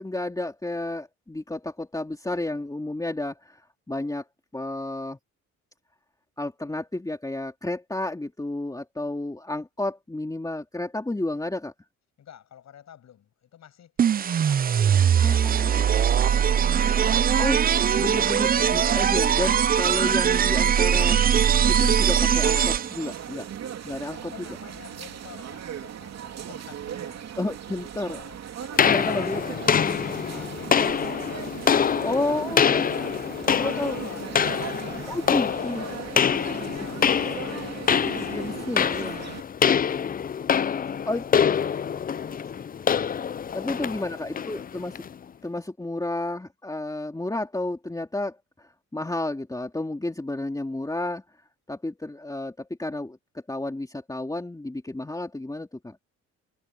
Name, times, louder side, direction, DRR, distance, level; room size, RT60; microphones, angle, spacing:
voice 1, 0.0-4.2 4.5-5.2 6.4-11.7 15.2-15.8 17.4-17.6 17.9-21.4 21.7-23.5 23.8-24.3 27.4-28.2 28.8-29.6 32.0-32.8 33.6-34.0 35.1-35.8 38.3-39.2 41.0-41.2 43.5-45.0 45.4-51.2 51.7-56.0, left 2 dB, 10° left, 3.0 m, -31 dB
voice 2, 12.2-14.0 14.2-16.8 24.0-27.3 27.8-29.5 30.3-31.5 31.8-38.7 39.3-42.9 43.5-44.1, left 10 dB, 65° left, 7.1 m, -49 dB
sound 1, 14.0-23.1, right 8 dB, 30° right, 0.4 m, -21 dB
sound 2, 19.8-39.4, right 9 dB, 60° right, 2.8 m, -38 dB
sound 3, 28.8-45.1, left 7 dB, 30° left, 0.5 m, -25 dB
cardioid pair, 90°, 30 cm